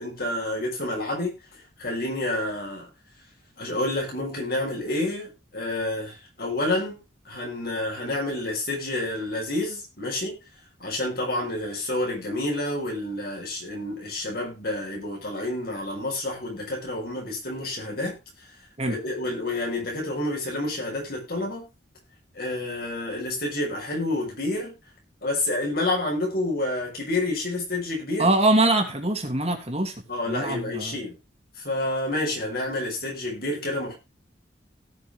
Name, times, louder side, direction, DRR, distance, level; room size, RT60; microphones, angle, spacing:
voice 1, 0.0-2.9 3.6-7.0 7.2-10.4 10.8-18.2 18.8-21.7 22.3-24.8 25.2-28.3 30.1-31.1 31.6-33.9, left 1 dB, 55° left, 6.8 m, -29 dB
voice 2, 28.2-29.9 30.3-30.9, right 2 dB, 35° right, 2.7 m, -23 dB
17.5 x 6.8 x 3.4 m
head